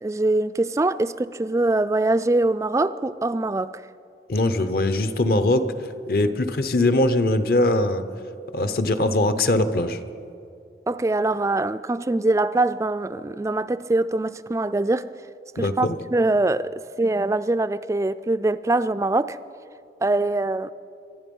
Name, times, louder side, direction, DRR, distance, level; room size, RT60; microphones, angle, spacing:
voice 1, 0.0-3.8 10.9-15.1 15.6-19.4 20.0-20.7, right 2 dB, 15° right, 15 dB, 0.3 m, -23 dB
voice 2, 4.3-5.6 6.1-8.0 8.5-10.0 15.6-16.0, left 1 dB, 55° left, 11 dB, 0.8 m, -21 dB
24.5 x 11.0 x 5.4 m, 2.5 s
head